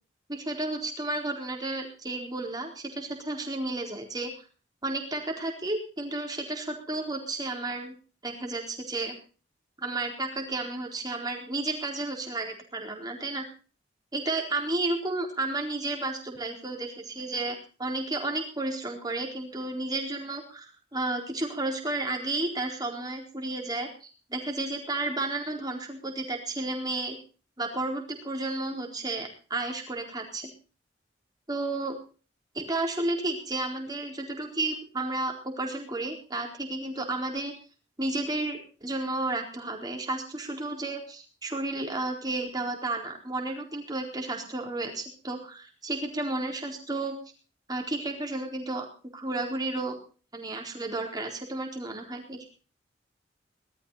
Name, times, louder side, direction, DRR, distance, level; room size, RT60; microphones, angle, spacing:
voice 1, 0.3-4.3 4.8-8.0 8.2-9.1 9.8-13.4 14.1-27.2 27.6-30.5 31.5-32.0 32.5-37.5 38.0-47.2 47.7-48.9 49.1-50.0 50.3-52.5, right 2 dB, 20° right, 1 dB, 4.2 m, -32 dB
19.5 x 13.0 x 4.2 m, 0.37 s
head